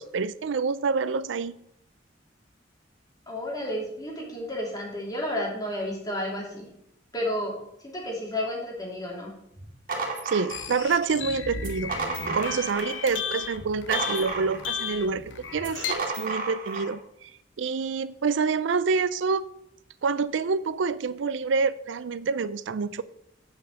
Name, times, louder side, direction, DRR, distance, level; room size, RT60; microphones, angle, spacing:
voice 1, 0.0-1.6 10.2-12.0 12.3-17.3 17.6-19.4 20.0-23.0, right 5 dB, 80° right, 16 dB, 0.4 m, -27 dB
voice 2, 3.3-6.7 7.1-7.6 7.8-9.3, left 1 dB, 20° left, -2 dB, 2.9 m, -31 dB
sound 1, 9.6-11.0 11.6-13.0 13.4-14.9 15.6-16.9, right 3 dB, 50° right, 2.4 m, -33 dB
sound 2, 10.5-15.9, left 7 dB, 85° left, 1.0 m, -34 dB
8.9 x 5.7 x 6.4 m, 0.77 s
head